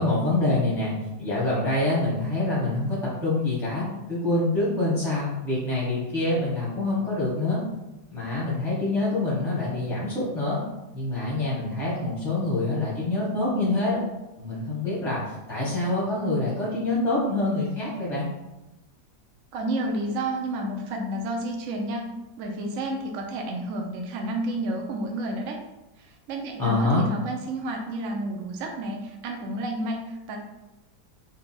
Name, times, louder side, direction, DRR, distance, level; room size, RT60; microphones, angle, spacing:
voice 1, 0.0-7.6 8.1-10.6 10.9-14.0 14.4-18.3 26.6-27.0, left 2 dB, ahead, -7 dB, 0.6 m, -26 dB
voice 2, 19.5-22.1 22.4-25.6 26.0-30.4, right 1 dB, 70° right, 1 dB, 0.7 m, -31 dB
3.8 x 2.2 x 4.2 m, 0.98 s
omnidirectional pair, 1.9 m